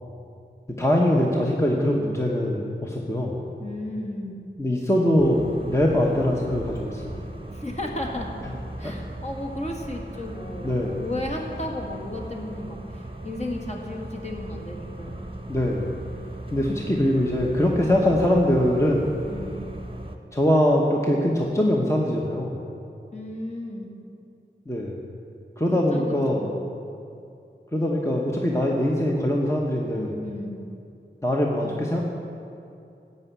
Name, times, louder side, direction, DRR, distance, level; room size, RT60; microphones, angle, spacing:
voice 1, 0.7-3.4 4.6-7.2 8.8-8.9 10.6-11.0 15.5-15.9 16.5-19.2 20.3-22.6 24.7-25.0 25.6-26.5 27.7-30.2 31.2-32.0, left 1 dB, 15° left, -2 dB, 1.0 m, -22 dB
voice 2, 3.6-4.4 7.5-8.3 8.8-15.3 19.2-19.7 23.1-23.9 25.9-26.5 29.9-30.6 31.6-31.8, left 1 dB, 35° left, -1 dB, 1.7 m, -34 dB
sound 1, 5.2-20.2, right 1 dB, 25° right, 0.8 m, -38 dB
12.0 x 5.5 x 8.1 m, 2.6 s
wide cardioid pair, 45°, 20 cm